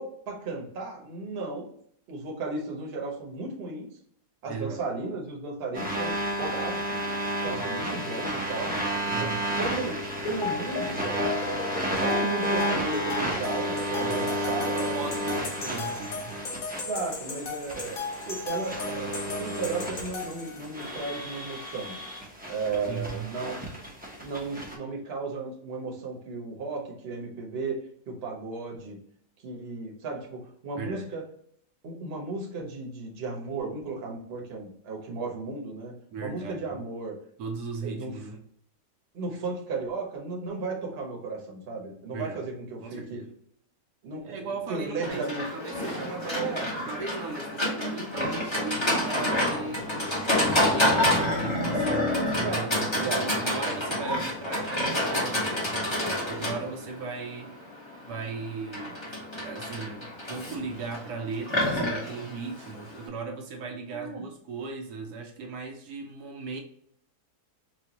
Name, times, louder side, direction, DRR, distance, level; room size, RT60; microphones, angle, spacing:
voice 1, 0.0-1.7 2.1-3.9 4.4-6.1 6.4-7.0 7.4-8.7 9.2-11.2 12.0-15.2 16.8-22.0 22.5-23.6 24.2-29.0 29.4-31.2 31.8-37.1 37.8-38.1 39.1-43.2 44.0-45.4 46.2-46.7 52.4-53.3 63.9-64.2, right 3 dB, 45° right, 0 dB, 1.0 m, -35 dB
voice 2, 4.5-4.8 9.1-9.4 14.0-16.4 22.9-23.3 30.8-31.1 36.1-36.8 37.4-38.4 42.1-42.5 42.8-43.3 44.2-49.9 50.5-57.7 58.0-59.0 59.3-66.6, right 4 dB, 80° right, 2 dB, 1.1 m, -37 dB
sound 1, 5.7-24.7, equal, 15° right, 0.3 m, -31 dB
sound 2, 10.3-20.9, left 4 dB, 55° left, 0.6 m, -36 dB
Livestock farm animals working animals, 45.0-63.1, left 1 dB, 20° left, 0.9 m, -28 dB
4.3 x 2.3 x 2.8 m, 0.65 s
omnidirectional pair, 1.7 m